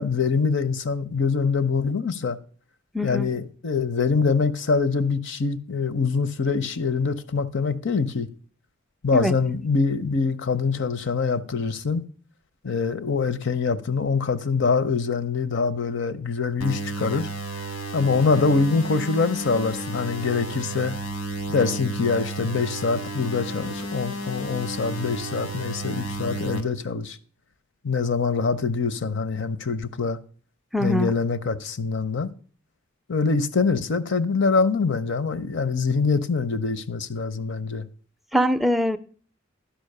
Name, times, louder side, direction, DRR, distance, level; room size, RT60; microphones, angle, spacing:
voice 1, 0.0-2.4 3.0-8.3 9.0-12.0 12.6-17.3 17.9-20.9 21.5-27.2 27.8-30.2 30.8-32.3 33.1-37.9, left 4 dB, 60° left, 0.6 m, -24 dB
voice 2, 2.9-3.3 9.1-9.3 30.7-31.1 38.3-39.0, equal, ahead, 0.3 m, -22 dB
sound 1, 16.6-26.6, right 1 dB, 85° left, 1.3 m, -32 dB
11.5 x 5.2 x 6.5 m
head